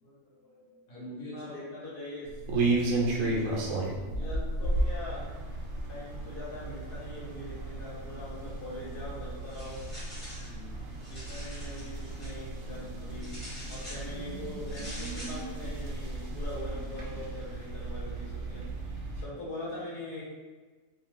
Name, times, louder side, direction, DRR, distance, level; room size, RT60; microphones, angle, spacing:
voice 1, 0.0-0.8 1.3-2.4 4.1-5.3 5.9-9.8 11.1-18.7 19.1-20.2, left 1 dB, 45° left, -7 dB, 1.1 m, -42 dB
voice 2, 0.9-1.5 2.6-4.3 10.4-10.9, equal, 70° left, -7 dB, 1.1 m, -45 dB
sound 1, 2.3-19.3, right 2 dB, 80° right, 1.0 m, -34 dB
sound 2, 9.4-10.5 10.9-12.3 13.2-14.1 14.7-15.4, equal, 25° left, 1.2 m, -45 dB
2.6 x 2.3 x 3.0 m, 1.3 s
omnidirectional pair, 1.4 m